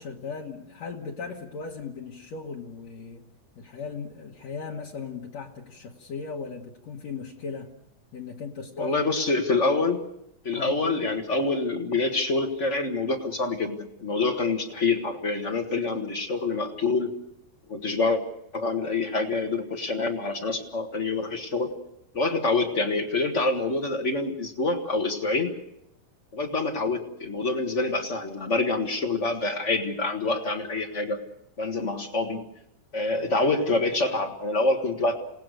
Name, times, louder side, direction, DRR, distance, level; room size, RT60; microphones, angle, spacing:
voice 1, 0.0-3.3 3.6-7.7 8.1-8.9 10.5-10.8, left 5 dB, 60° left, -2 dB, 2.5 m, -37 dB
voice 2, 8.8-10.0 10.4-17.1 17.7-18.2 18.5-21.7 22.1-25.5 26.3-31.2 31.6-32.4 32.9-35.1, left 3 dB, 40° left, 5 dB, 1.0 m, -26 dB
28.5 x 18.0 x 6.5 m, 0.80 s
omnidirectional pair, 3.8 m